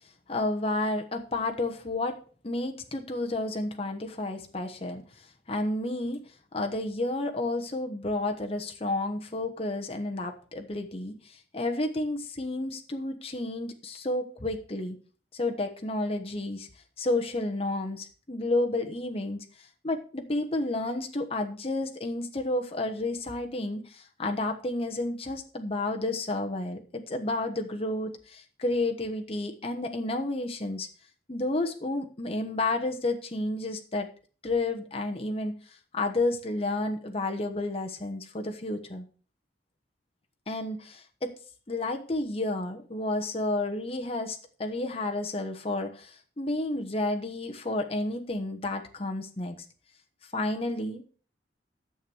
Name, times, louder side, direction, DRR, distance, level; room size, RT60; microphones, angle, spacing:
voice 1, 0.3-2.2 2.4-6.2 6.5-15.0 15.3-16.7 17.0-19.4 19.8-30.9 31.3-34.1 34.4-39.1 40.5-41.3 41.7-49.6 50.3-51.0, left 2 dB, 35° left, 4 dB, 1.1 m, -31 dB
10.0 x 7.2 x 6.1 m, 0.40 s
head